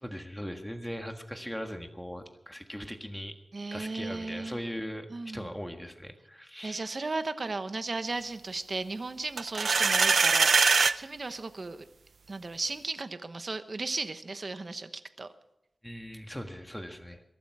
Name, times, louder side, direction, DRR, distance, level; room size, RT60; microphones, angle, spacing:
voice 1, 0.0-3.3 3.7-6.9 15.8-17.2, equal, 5° left, 5 dB, 1.6 m, -39 dB
voice 2, 3.5-4.6 5.1-5.5 6.6-11.9 12.3-14.9 15.2-15.3, right 3 dB, 45° right, 10 dB, 1.0 m, -35 dB
sound 1, 9.4-11.0, right 4 dB, 70° right, 0.5 m, -22 dB
22.5 x 12.0 x 4.8 m, 0.87 s
wide cardioid pair, 105°, 0 cm